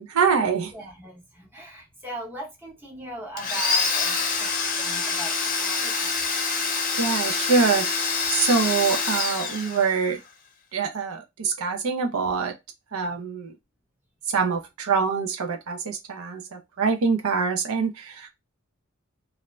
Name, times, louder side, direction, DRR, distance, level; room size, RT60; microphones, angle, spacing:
voice 1, 0.0-0.7 7.0-10.2 10.7-12.5 12.9-13.5 14.3-18.3, right 5 dB, 75° right, 0.5 m, -25 dB
voice 2, 0.7-6.3, right 2 dB, 10° right, 0.8 m, -39 dB
Domestic sounds home sounds, 3.4-10.2, left 4 dB, 40° left, 0.7 m, -26 dB
2.5 x 2.1 x 3.0 m
head